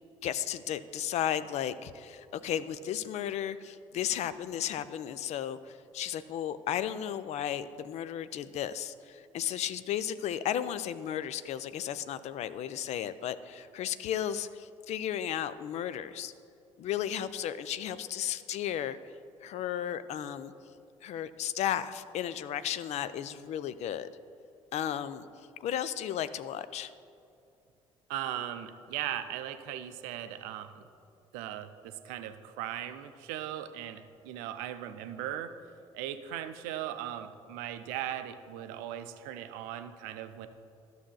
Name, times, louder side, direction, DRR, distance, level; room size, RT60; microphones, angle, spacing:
voice 1, 0.2-16.3 16.8-19.0 19.4-20.5 21.0-24.1 24.7-25.3 25.6-26.9, left 10 dB, 45° left, 13 dB, 0.4 m, -34 dB
voice 2, 28.1-30.9 31.3-35.6 35.9-40.5, right 11 dB, 60° right, 10 dB, 0.5 m, -38 dB
13.5 x 6.5 x 2.2 m, 2.6 s
figure-of-eight pair, 50°, 16 cm